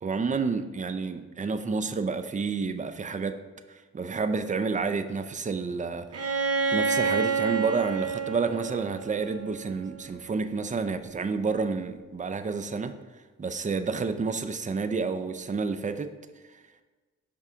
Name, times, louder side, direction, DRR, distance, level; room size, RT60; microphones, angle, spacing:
voice 1, 0.0-3.4 3.7-6.2 6.7-12.9 13.4-16.1, right 4 dB, 25° right, 0.5 m, -29 dB
Bowed string instrument, 6.1-9.9, right 5 dB, 55° right, 0.9 m, -28 dB
5.4 x 3.6 x 5.0 m
cardioid pair, 55°, 29 cm